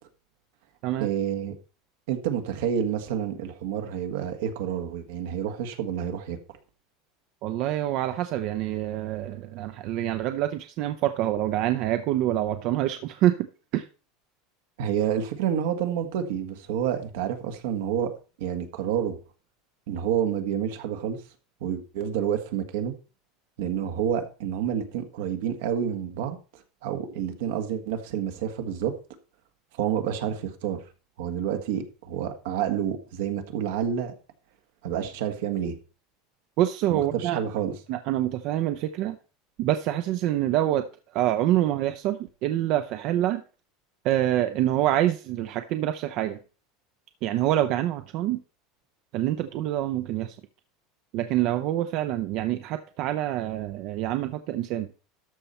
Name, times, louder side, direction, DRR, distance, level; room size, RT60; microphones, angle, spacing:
voice 1, 1.0-1.5 2.1-6.4 14.8-18.1 18.4-19.2 19.9-21.2 21.6-22.9 23.6-28.9 29.7-30.8 31.2-34.1 34.8-35.8 36.9-37.7, right 9 dB, 75° right, 1.6 m, -29 dB
voice 2, 7.4-13.5 13.7-13.8 36.6-37.4 37.9-39.2 39.6-40.8 41.1-43.4 44.0-46.4 47.2-48.4 49.1-50.4 51.1-54.9, right 13 dB, 55° right, 0.7 m, -26 dB
13.0 x 5.5 x 4.4 m
supercardioid pair, 135°, 0 cm